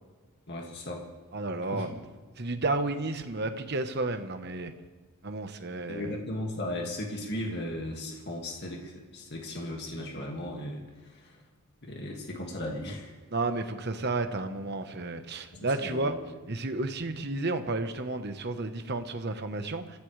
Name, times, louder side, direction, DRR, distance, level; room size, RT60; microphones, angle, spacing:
voice 1, 0.5-1.0 1.7-2.0 5.9-11.4 11.8-13.1 15.5-16.2, left 1 dB, 50° left, 0 dB, 2.1 m, -36 dB
voice 2, 1.3-2.0 2.4-4.7 5.2-6.2 13.3-16.2 16.5-20.0, right 2 dB, 50° right, 7 dB, 1.1 m, -32 dB
26.0 x 15.0 x 3.3 m, 1.4 s
head